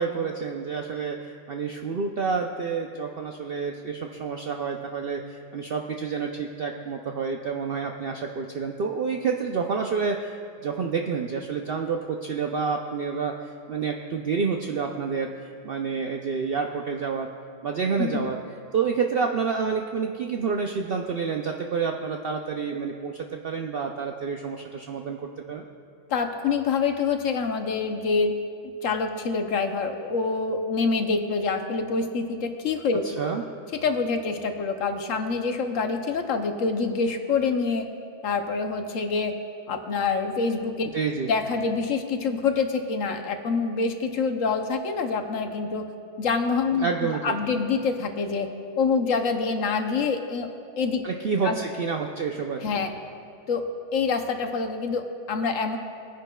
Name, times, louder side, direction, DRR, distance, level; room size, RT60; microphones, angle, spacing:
voice 1, 0.0-10.3 10.6-13.3 13.7-15.3 15.6-17.3 17.6-18.4 18.7-25.2 25.5-25.6 33.2-33.4 40.9-41.3 46.8-47.4 51.0-52.8, right 5 dB, 70° right, 2 dB, 0.5 m, -28 dB
voice 2, 26.1-28.3 28.8-33.0 33.8-37.9 38.2-39.3 39.7-40.9 41.3-45.9 46.2-46.9 47.2-48.5 48.8-50.5 50.8-51.0 51.4-51.6 52.6-52.9 53.5-53.7 53.9-55.8, left 4 dB, 65° left, 6 dB, 1.1 m, -26 dB
20.0 x 10.0 x 2.2 m, 2.5 s
omnidirectional pair, 1.5 m